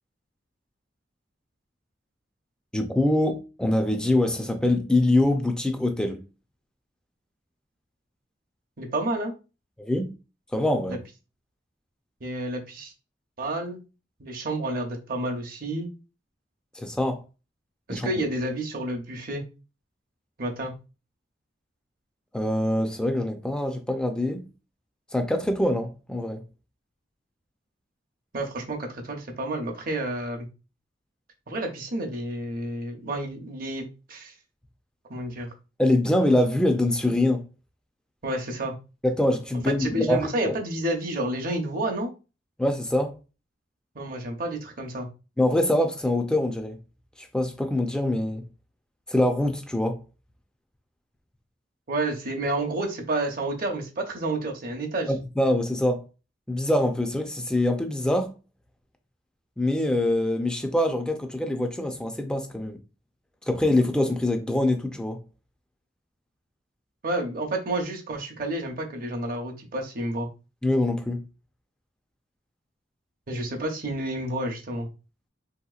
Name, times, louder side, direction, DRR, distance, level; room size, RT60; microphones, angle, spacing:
voice 1, 2.7-6.2 9.8-10.1 10.5-11.0 16.8-17.2 17.9-18.1 22.3-24.5 25.1-26.4 35.8-37.4 39.0-40.5 42.6-43.2 45.4-46.8 47.2-48.4 49.1-50.0 55.1-56.0 56.5-58.3 59.6-62.8 63.5-65.2 70.6-71.2, left 1 dB, 5° left, 0.4 m, -24 dB
voice 2, 8.8-9.3 10.9-11.0 12.2-12.9 13.4-13.8 14.2-15.9 17.9-19.4 20.4-20.7 28.3-30.5 31.5-34.3 35.1-35.5 38.2-38.8 39.7-42.1 43.9-45.1 51.9-55.1 67.0-70.3 73.3-74.9, right 1 dB, 50° right, 0.7 m, -30 dB
3.4 x 2.8 x 2.3 m
head